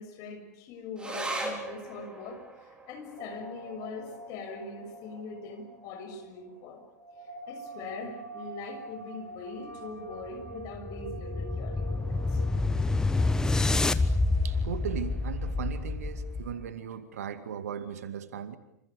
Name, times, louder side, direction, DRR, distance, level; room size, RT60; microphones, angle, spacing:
voice 1, 0.0-6.8 7.2-12.4, left 3 dB, 40° left, 6 dB, 6.6 m, -42 dB
sound 1, 1.0-7.7 8.1-8.2 8.5-9.1 9.7-9.8, right 2 dB, 10° right, 5.0 m, -42 dB
sound 2, 3.2-17.0, right 2 dB, 90° right, 4.7 m, -47 dB
sound 3, 10.3-16.6, left 3 dB, 5° left, 1.2 m, -28 dB
voice 2, 14.4-18.6, right 8 dB, 60° right, 11 dB, 2.3 m, -37 dB
28.0 x 27.0 x 7.0 m, 0.74 s
figure-of-eight pair, 95°, 9 cm